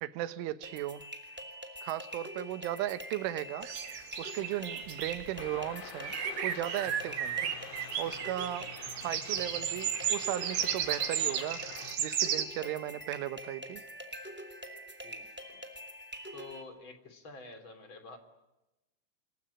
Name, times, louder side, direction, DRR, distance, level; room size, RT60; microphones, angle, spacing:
voice 1, 0.0-1.0 1.8-3.7 4.2-6.2 6.4-7.5 8.0-13.8, right 13 dB, 85° right, 13 dB, 3.6 m, -36 dB
sound 1, 0.6-16.6, equal, 5° right, 2.0 m, -45 dB
sound 2, 3.6-5.7 6.0-12.4, right 9 dB, 70° right, 4.2 m, -34 dB
sound 3, 5.4-12.0, left 11 dB, 75° left, 3.6 m, -48 dB
voice 2, 15.0-15.6 16.3-18.2, left 3 dB, 30° left, 8 dB, 3.3 m, -49 dB
28.0 x 21.5 x 9.9 m, 0.98 s
omnidirectional pair, 5.5 m